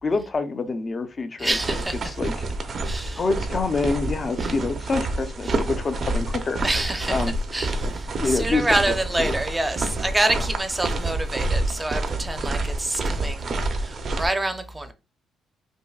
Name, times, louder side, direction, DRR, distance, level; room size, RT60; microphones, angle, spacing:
voice 1, 0.0-1.6 2.0-2.5 3.2-6.6 7.1-7.3 8.2-8.7 9.2-9.4, left 3 dB, 35° left, 0.6 m, -26 dB
voice 2, 1.4-2.1 2.8-3.3 4.4-4.5 5.4-5.6 6.6-13.4 13.7-14.9, right 1 dB, 15° right, 0.7 m, -27 dB
sound 1, 1.5-14.3, right 2 dB, 50° right, 0.7 m, -28 dB
5.3 x 2.1 x 2.4 m
cardioid pair, 90°, 0 cm